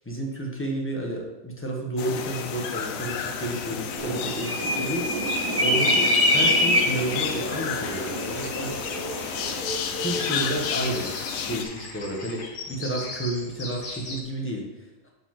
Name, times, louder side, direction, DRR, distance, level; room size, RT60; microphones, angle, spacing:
voice 1, 0.0-5.1 5.6-8.8 10.0-11.1 11.5-15.1, right 1 dB, 10° left, -2 dB, 1.1 m, -31 dB
sound 1, 2.0-11.6, left 7 dB, 90° left, 1.1 m, -31 dB
sound 2, 4.0-9.6, equal, 20° right, 1.0 m, -25 dB
sound 3, 7.1-14.2, left 2 dB, 45° left, 1.1 m, -38 dB
5.1 x 4.9 x 5.8 m, 1.0 s
omnidirectional pair, 1.4 m